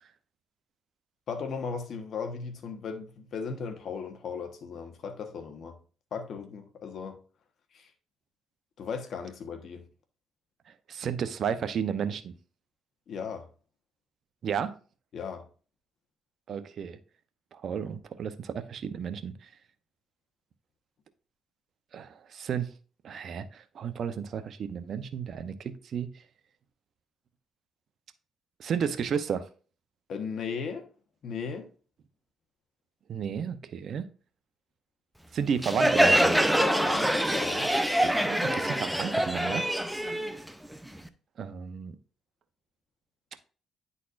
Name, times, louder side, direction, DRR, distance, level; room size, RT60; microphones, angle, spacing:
voice 1, 1.3-5.8 6.1-7.2 7.7-7.9 8.8-9.8 13.1-13.5 15.1-15.4 30.1-30.9 31.2-31.7 36.6-37.7, left 5 dB, 65° left, 1.1 m, -36 dB
voice 2, 10.9-12.3 14.4-14.8 16.5-17.0 17.5-19.5 21.9-22.7 23.0-26.1 28.6-29.5 33.1-34.0 35.3-36.5 38.0-39.6 41.4-41.9, right 7 dB, 60° right, 0.6 m, -32 dB
Crowd, 35.6-41.1, equal, 5° right, 0.5 m, -25 dB
9.6 x 4.1 x 2.5 m
cardioid pair, 90°, 0 cm